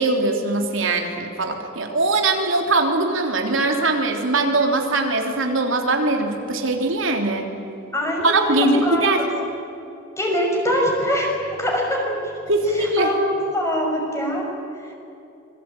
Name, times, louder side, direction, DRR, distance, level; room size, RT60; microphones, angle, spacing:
voice 1, 0.0-7.5 8.2-9.2 12.5-13.1, right 2 dB, 80° right, 2 dB, 3.3 m, -21 dB
voice 2, 7.9-9.0 10.2-12.3 12.7-14.5 14.8-14.9, equal, 15° left, 0 dB, 6.1 m, -23 dB
26.5 x 22.5 x 9.2 m, 2.8 s
head